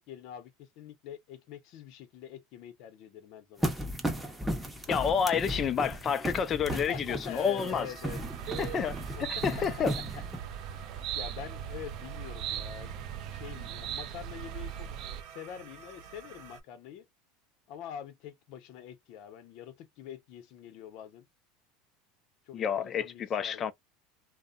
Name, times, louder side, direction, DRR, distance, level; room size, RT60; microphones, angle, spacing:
voice 1, 0.0-3.7 6.5-8.2 9.1-9.4 10.5-10.8 11.1-14.9 15.2-17.0 17.7-21.3 22.5-23.7, left 9 dB, 60° left, 0.8 m, -45 dB
sound 1, 3.6-10.4, right 1 dB, 5° right, 0.7 m, -35 dB
voice 2, 4.9-7.9 8.6-9.9 22.5-23.7, left 7 dB, 30° left, 0.5 m, -29 dB
sound 2, 7.6-16.6, right 7 dB, 65° right, 0.8 m, -50 dB
sound 3, 8.0-15.2, right 10 dB, 45° right, 0.4 m, -39 dB
2.7 x 2.1 x 2.5 m
supercardioid pair, 135°, 0 cm